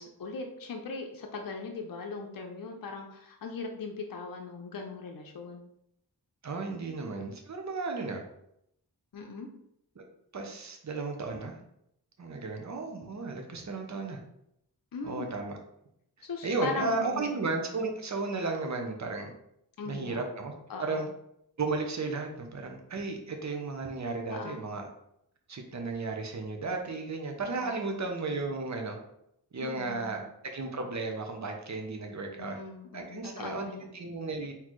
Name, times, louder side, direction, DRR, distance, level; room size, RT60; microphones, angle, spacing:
voice 1, 0.0-5.6 9.1-9.5 14.9-15.3 16.2-17.3 19.8-20.2 20.7-21.1 24.3-24.6 27.6-28.0 29.6-30.2 32.4-33.9, left 4 dB, 60° left, 2 dB, 0.6 m, -39 dB
voice 2, 6.4-8.2 10.0-10.1 10.3-11.6 12.2-14.2 15.0-15.6 16.2-19.3 19.8-21.1 21.6-24.9 25.5-29.0 29.5-32.6 32.9-33.7 33.9-34.5, right 3 dB, 45° right, 3 dB, 0.7 m, -34 dB
4.0 x 2.8 x 3.1 m, 0.75 s
wide cardioid pair, 65°, 39 cm